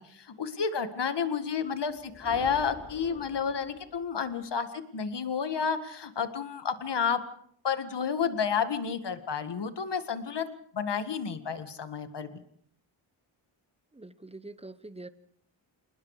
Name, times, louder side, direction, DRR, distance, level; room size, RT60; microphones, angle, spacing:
voice 1, 0.1-7.2 7.6-10.5 10.7-12.4, left 6 dB, 60° left, 10 dB, 1.9 m, -31 dB
sound 1, 1.8-4.4, left 2 dB, 30° left, 6.8 m, -48 dB
voice 2, 13.9-15.1, right 2 dB, 15° right, 13 dB, 1.0 m, -45 dB
28.0 x 20.0 x 4.9 m, 0.64 s
wide cardioid pair, 120°, 47 cm